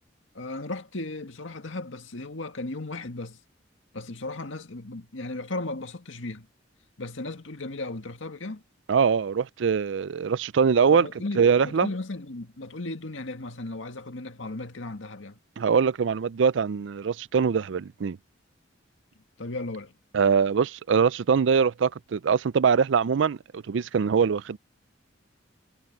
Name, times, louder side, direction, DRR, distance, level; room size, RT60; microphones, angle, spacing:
voice 1, 0.3-3.4 3.9-6.5 7.0-8.6 10.9-15.4 19.4-19.9, left 2 dB, 85° left, 1.9 m, -35 dB
voice 2, 8.9-11.1 11.4-11.9 15.6-18.2 20.1-24.6, right 6 dB, 70° right, 0.4 m, -23 dB
head